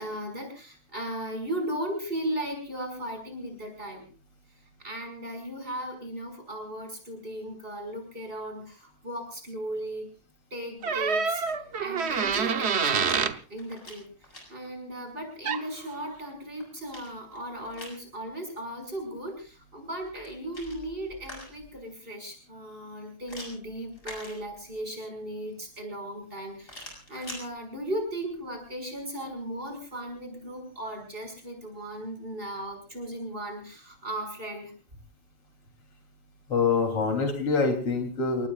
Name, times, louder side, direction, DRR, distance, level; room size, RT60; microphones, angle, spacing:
voice 1, 0.0-4.0 4.8-10.1 10.5-11.4 11.8-14.0 14.5-34.7, right 1 dB, 25° right, 3 dB, 6.4 m, -36 dB
sound 1, 10.8-13.4 15.4-15.7, right 6 dB, 50° right, 0.8 m, -26 dB
sound 2, 12.2-13.2 13.5-14.4 16.1-18.0 20.0-21.8 23.3-24.8 26.6-27.4, left 1 dB, 35° left, 7.0 m, -45 dB
voice 2, 36.5-38.5, left 4 dB, 85° left, 5 dB, 4.4 m, -25 dB
30.0 x 19.0 x 2.5 m, 0.36 s
omnidirectional pair, 2.4 m